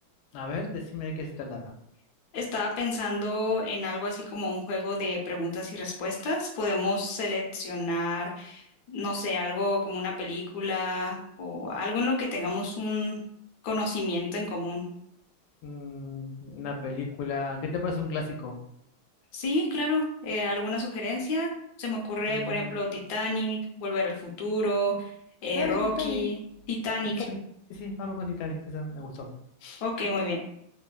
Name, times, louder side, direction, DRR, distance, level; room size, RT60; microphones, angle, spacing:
voice 1, 0.3-1.6 15.6-18.6 22.3-22.8 25.5-26.2 27.0-27.4 27.7-29.3 29.6-29.8, left 4 dB, 85° left, 2 dB, 1.3 m, -34 dB
voice 2, 2.3-13.2 13.6-14.8 19.3-21.5 21.8-25.1 25.4-26.4 26.7-27.1 29.8-30.4, left 2 dB, 65° left, -1 dB, 1.1 m, -30 dB
3.2 x 2.1 x 2.3 m, 0.73 s
omnidirectional pair, 2.1 m